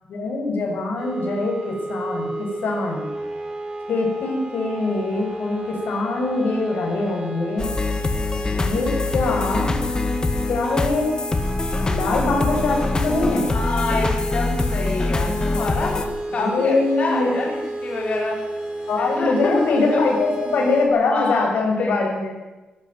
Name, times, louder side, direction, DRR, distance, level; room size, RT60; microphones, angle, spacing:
voice 1, 0.1-3.1 3.9-7.7 8.6-9.8 10.5-11.1 11.8-13.4 16.3-17.3 18.9-22.4, left 3 dB, 75° left, 0 dB, 7.2 m, -23 dB
sound 1, 1.0-20.9, right 2 dB, 20° right, 5.3 m, -33 dB
sound 2, 7.6-16.1, left 2 dB, 25° left, 1.8 m, -24 dB
voice 2, 8.3-8.8 13.5-18.4 19.0-20.1 21.0-22.0, left 3 dB, 40° left, -2 dB, 5.5 m, -28 dB
22.0 x 12.5 x 9.6 m, 1.1 s
wide cardioid pair, 145°, 3 cm